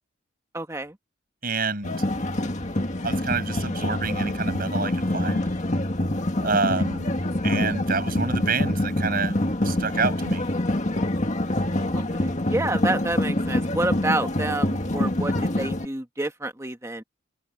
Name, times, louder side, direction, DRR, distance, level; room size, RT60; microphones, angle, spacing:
voice 1, 0.5-1.0 11.9-17.0, right 2 dB, 15° right, 1.5 m, -28 dB
voice 2, 1.4-1.9 3.0-5.4 6.4-7.1 7.4-9.4 9.6-10.4, right 4 dB, 45° right, 6.1 m, -28 dB
sound 1, 1.8-15.9, left 1 dB, 35° left, 1.9 m, -25 dB
head